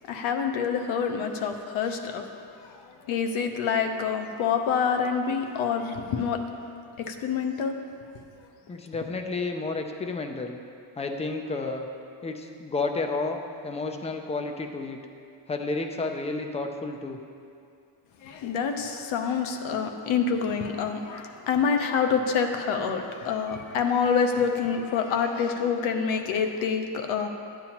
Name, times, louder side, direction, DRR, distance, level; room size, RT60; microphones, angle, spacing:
voice 1, 0.1-2.3 2.6-6.5 7.0-7.7 18.2-27.3, left 6 dB, 85° left, 5 dB, 0.9 m, -27 dB
voice 2, 8.7-10.6 11.0-11.9 12.2-15.0 15.5-17.2, left 3 dB, 15° left, 4 dB, 0.3 m, -31 dB
12.0 x 9.4 x 2.9 m, 2.4 s
cardioid pair, 175°, 47 cm